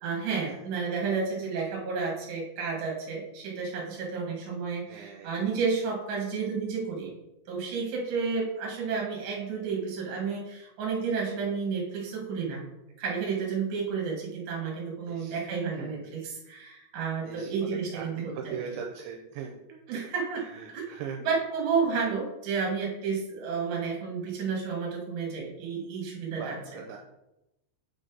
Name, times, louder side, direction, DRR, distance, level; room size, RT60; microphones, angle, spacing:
voice 1, 0.0-7.1 7.5-12.7 13.0-18.6 19.9-20.4 20.7-20.8 21.2-26.8, right 5 dB, 50° right, -2 dB, 2.8 m, -31 dB
voice 2, 4.9-5.3 15.1-15.4 15.7-15.9 17.2-20.1 20.4-21.2 26.3-27.0, right 7 dB, 80° right, 1 dB, 2.8 m, -40 dB
8.5 x 3.9 x 3.9 m, 0.93 s
omnidirectional pair, 5.4 m